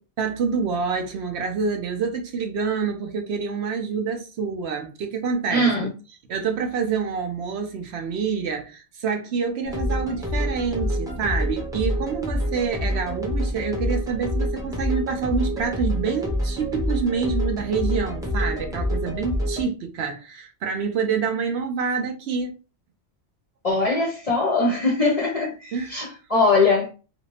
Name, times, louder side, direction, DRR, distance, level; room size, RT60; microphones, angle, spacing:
voice 1, 0.2-5.7 6.3-22.6 25.7-26.1, right 5 dB, 65° right, 0.8 m, -27 dB
voice 2, 5.5-5.9 23.6-26.9, left 2 dB, 40° left, 0.6 m, -21 dB
sound 1, 9.6-19.6, equal, 5° right, 0.5 m, -27 dB
2.5 x 2.4 x 3.1 m
omnidirectional pair, 1.2 m